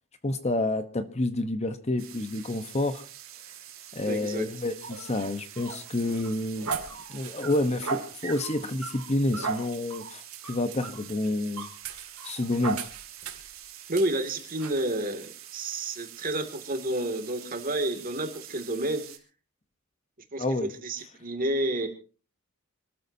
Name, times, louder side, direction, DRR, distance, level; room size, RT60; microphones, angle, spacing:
voice 1, 0.2-3.0 3.9-6.7 7.1-11.7 12.2-12.8 20.4-20.7, left 2 dB, 30° left, 10 dB, 1.0 m, -29 dB
sound 1, 2.0-19.2, right 11 dB, 70° right, 3.2 m, -47 dB
voice 2, 4.1-4.5 13.9-19.0 20.3-21.9, right 1 dB, 40° right, 5 dB, 2.4 m, -30 dB
sound 2, 4.8-13.5 13.9-14.1 14.6-14.8, right 5 dB, 85° right, 2.4 m, -37 dB
26.5 x 13.5 x 2.8 m, 0.37 s
head